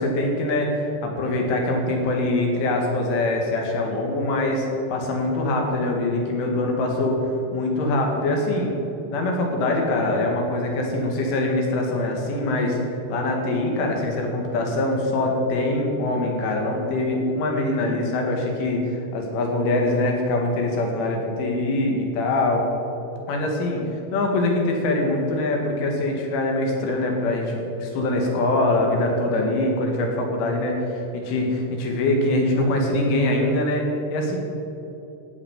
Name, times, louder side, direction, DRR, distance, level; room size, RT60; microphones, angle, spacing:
voice 1, 0.0-8.7 9.1-22.6 23.3-23.8 24.1-34.4, left 2 dB, 75° left, 1 dB, 4.4 m, -23 dB
16.0 x 6.2 x 9.0 m, 2.9 s
omnidirectional pair, 5.8 m